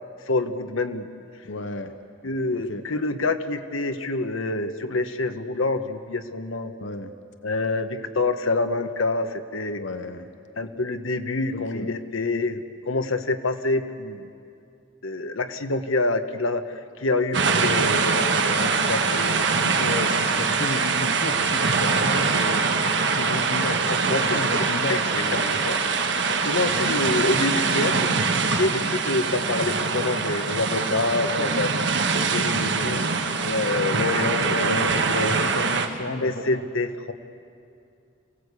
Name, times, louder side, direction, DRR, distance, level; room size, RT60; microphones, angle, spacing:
voice 1, 0.3-1.1 2.2-6.7 7.4-9.8 10.6-14.3 15.0-16.6 17.0-19.5 24.1-24.4 24.9-25.0 25.3-25.8 26.3-31.7 32.1-35.4 36.2-37.1, left 2 dB, 80° left, 8 dB, 1.1 m, -27 dB
voice 2, 1.4-1.9 2.5-2.8 6.8-7.1 9.8-10.3 11.5-11.9 19.6-22.7 23.2-25.6 26.7-26.9 32.5-32.9 34.5-36.6, left 2 dB, 65° left, 8 dB, 1.0 m, -33 dB
sound 1, 17.3-35.9, right 4 dB, 55° right, 1.4 m, -23 dB
28.0 x 17.0 x 8.3 m, 2.5 s
head